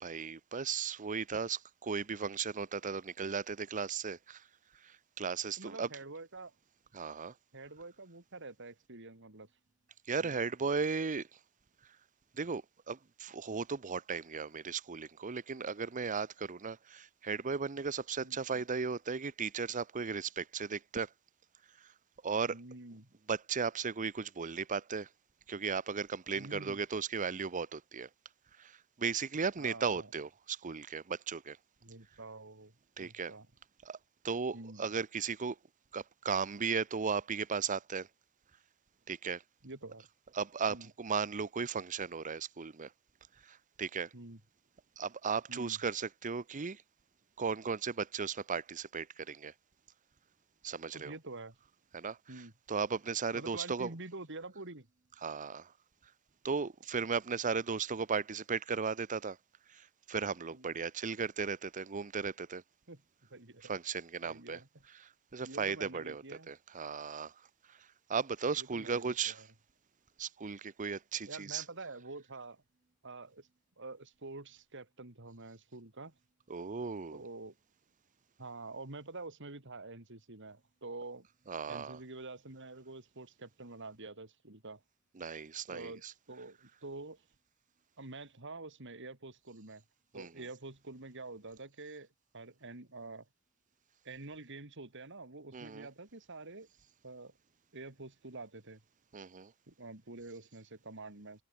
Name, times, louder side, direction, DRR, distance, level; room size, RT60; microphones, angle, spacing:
voice 1, 0.0-4.4 4.8-5.9 6.9-7.3 10.1-11.3 12.3-21.1 22.2-22.6 23.3-25.1 25.5-28.1 28.6-31.6 33.0-33.3 33.9-34.0 34.2-35.6 35.9-38.1 39.1-39.4 40.3-42.9 43.4-44.1 45.0-46.8 47.4-49.5 50.6-51.1 51.9-52.2 52.7-53.9 55.2-55.7 56.4-59.4 59.7-62.6 63.6-64.6 65.3-67.3 67.7-67.8 68.1-69.4 70.2-71.6 76.5-77.2 81.5-82.0 85.2-86.1 90.1-90.3 95.5-95.9 99.1-99.5, right 5 dB, 35° right, 0.7 m, -36 dB
voice 2, 5.6-6.5 7.5-9.5 10.2-10.4 18.2-18.6 22.5-23.1 26.3-26.8 29.6-30.1 31.8-32.7 33.0-33.5 34.5-34.8 39.6-40.0 40.7-40.9 44.1-44.4 45.5-45.8 50.9-51.6 52.3-52.5 53.3-54.9 60.5-60.8 62.9-63.0 63.3-63.7 64.2-64.8 65.4-66.5 68.6-69.5 71.3-72.6 73.0-73.5 73.8-76.1 77.1-77.5 78.4-81.3 81.7-84.8 85.7-87.2 88.0-89.8 90.1-92.1 92.3-93.3 94.0-96.7 97.0-97.3 97.7-98.8 99.7-101.4, right 3 dB, 60° right, 3.0 m, -47 dB
head